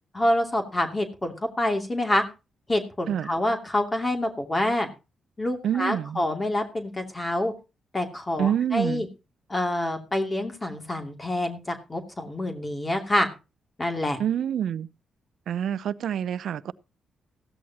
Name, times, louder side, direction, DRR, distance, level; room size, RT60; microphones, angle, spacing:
voice 1, 0.1-2.2 2.7-4.9 5.4-7.5 7.9-9.1 9.5-13.3 13.8-14.2, left 1 dB, 25° left, 2.7 m, -27 dB
voice 2, 5.6-6.2 8.4-9.0 14.2-14.9 15.5-16.7, right 9 dB, 75° right, 0.6 m, -27 dB
15.5 x 13.0 x 2.9 m
supercardioid pair, 60°, 0 cm